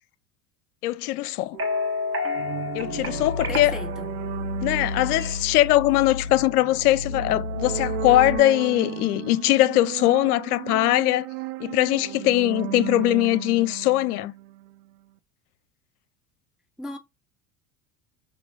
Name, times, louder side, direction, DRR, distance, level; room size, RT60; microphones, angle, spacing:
voice 1, 0.8-1.6 2.7-3.7 4.6-11.3 11.6-14.3, left 16 dB, 70° left, 0.6 m, -21 dB
sound 1, 1.5-5.6, left 2 dB, 30° right, 1.8 m, -31 dB
sound 2, 2.3-14.9, right 15 dB, 65° right, 0.6 m, -35 dB
sound 3, 2.8-8.4, left 5 dB, 90° right, 1.7 m, -33 dB
voice 2, 3.5-4.1 16.8-17.0, left 1 dB, ahead, 0.3 m, -36 dB
5.9 x 3.0 x 2.5 m
hypercardioid pair, 75°, 46 cm